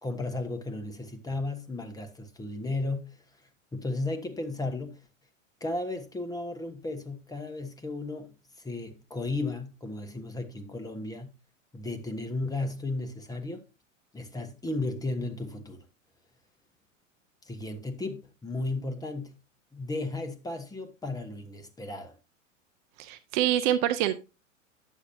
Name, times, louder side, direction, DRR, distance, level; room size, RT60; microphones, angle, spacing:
voice 1, 0.0-3.2 3.7-5.0 5.6-11.3 11.7-13.6 14.1-15.9 17.4-19.4 19.7-22.2, left 2 dB, 10° left, 1.1 m, -34 dB
voice 2, 23.0-24.2, right 12 dB, 40° right, 0.6 m, -26 dB
9.9 x 7.2 x 2.7 m
figure-of-eight pair, 95°, 38 cm